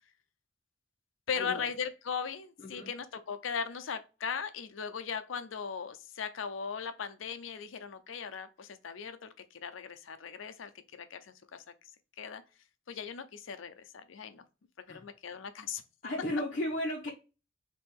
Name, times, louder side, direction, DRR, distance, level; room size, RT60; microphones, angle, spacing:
voice 1, 1.3-11.6 12.2-12.4 12.9-14.4 14.9-15.8, left 6 dB, 90° left, 0.5 m, -38 dB
voice 2, 2.6-2.9 14.9-15.0 16.0-17.1, left 1 dB, 40° left, 0.8 m, -34 dB
3.5 x 3.0 x 4.4 m
head